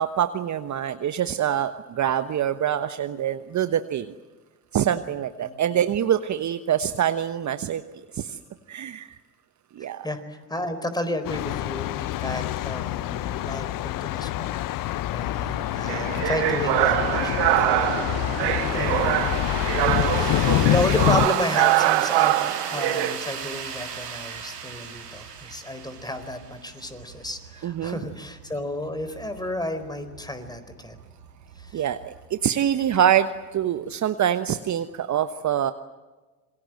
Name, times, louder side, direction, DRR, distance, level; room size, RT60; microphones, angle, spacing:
voice 1, 0.0-4.1 4.7-7.8 8.1-8.4 8.7-9.2 9.7-10.1 24.0-24.4 27.6-28.0 31.7-35.7, right 10 dB, 35° right, 10 dB, 1.2 m, -25 dB
voice 2, 9.8-17.9 18.4-19.2 20.1-31.0 31.6-31.9, left 1 dB, 10° left, 10 dB, 4.4 m, -32 dB
Thunder, 11.2-21.3, left 15 dB, 45° left, 0.8 m, -26 dB
sound 1, 15.3-33.9, right 7 dB, 85° right, 3.8 m, -38 dB
sound 2, 15.9-23.1, right 16 dB, 60° right, 1.6 m, -24 dB
27.0 x 23.0 x 7.8 m, 1.2 s
hypercardioid pair, 65°, 47 cm